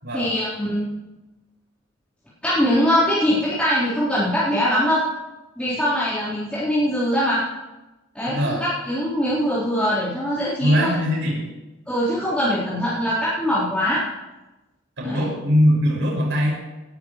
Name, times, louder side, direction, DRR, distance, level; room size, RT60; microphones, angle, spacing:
voice 1, 0.1-0.9 2.4-5.0 5.6-7.4 8.1-10.9 11.9-14.0 15.0-15.3, equal, 5° left, -14 dB, 4.4 m, -22 dB
voice 2, 8.3-8.6 10.6-11.4 15.0-16.5, equal, 65° right, -3 dB, 6.3 m, -21 dB
18.5 x 14.5 x 3.3 m, 1.1 s
head